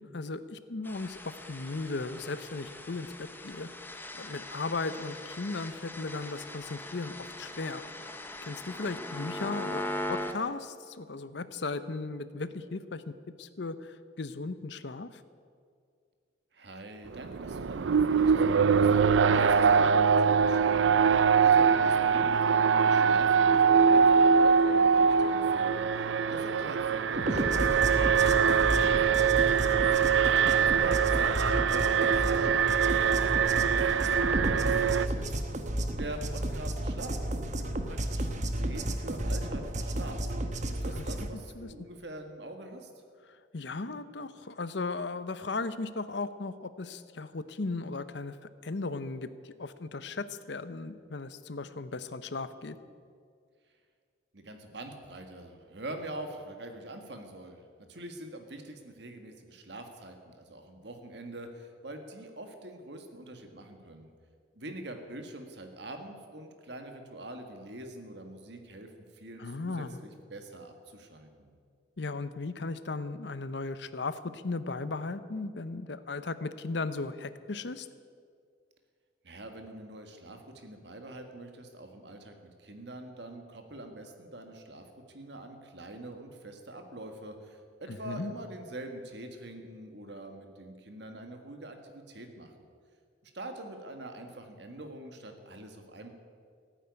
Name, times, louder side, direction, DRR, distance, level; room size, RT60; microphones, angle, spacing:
voice 1, 0.0-7.8 8.4-13.1 13.4-15.2 30.4-31.0 41.0-41.1 41.3-41.7 43.5-48.4 48.6-52.8 69.4-70.0 72.0-77.9 87.9-88.3, left 3 dB, 65° left, 13 dB, 0.7 m, -36 dB
sound 1, 0.8-10.3, left 1 dB, 10° left, 0.9 m, -40 dB
voice 2, 16.5-20.9 21.4-30.0 30.6-35.4 35.9-40.2 40.7-42.9 54.3-64.1 64.5-71.5 79.2-92.5 93.2-96.1, right 1 dB, 60° right, 5 dB, 1.8 m, -44 dB
Alarm, 17.1-35.1, right 6 dB, 80° right, 0.5 m, -23 dB
sound 2, 27.2-41.3, right 1 dB, 40° right, 1.1 m, -32 dB
14.5 x 9.2 x 9.5 m, 2.2 s
head